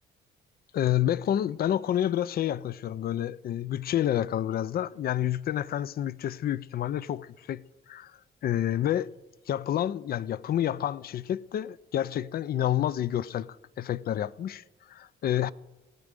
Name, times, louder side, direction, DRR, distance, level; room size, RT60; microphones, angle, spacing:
voice 1, 0.7-7.6 7.9-8.1 8.4-9.1 9.5-15.5, left 11 dB, 50° left, 0.4 m, -29 dB
18.5 x 8.9 x 5.2 m
cardioid pair, 90°, 20 cm